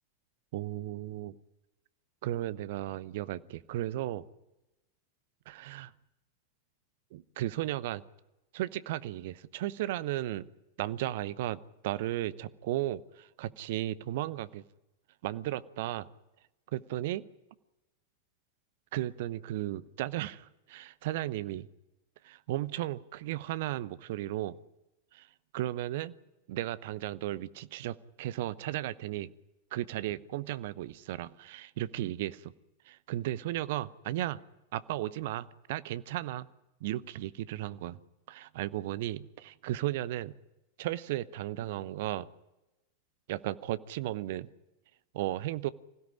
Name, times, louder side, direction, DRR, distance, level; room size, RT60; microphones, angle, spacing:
voice 1, 0.5-1.4 2.2-4.2 5.5-5.9 7.1-8.0 8.5-10.5 10.8-14.6 15.2-16.1 16.7-17.2 18.9-21.7 22.2-24.6 25.1-25.3 25.5-26.1 26.5-29.3 29.7-32.5 32.9-34.4 34.7-36.5 36.8-38.0 38.3-40.3 40.8-42.3 43.3-44.5 45.1-45.7, right 14 dB, 50° right, 16 dB, 0.9 m, -35 dB
26.0 x 16.5 x 10.0 m, 0.97 s
figure-of-eight pair, 90°, 0 cm